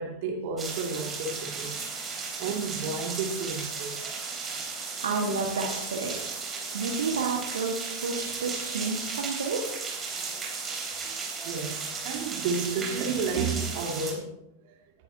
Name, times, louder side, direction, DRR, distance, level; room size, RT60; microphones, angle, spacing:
voice 1, 0.0-1.8 2.4-4.0 5.2-5.3 6.6-6.8 10.1-14.3 14.7-14.8, right 4 dB, 50° right, 2 dB, 2.3 m, -32 dB
sound 1, 0.6-14.1, right 4 dB, 20° right, 3.5 m, -35 dB
voice 2, 5.0-6.2 6.7-9.6, right 4 dB, 65° right, 1 dB, 1.5 m, -30 dB
18.5 x 10.5 x 2.8 m, 0.85 s
figure-of-eight pair, 90°, 0 cm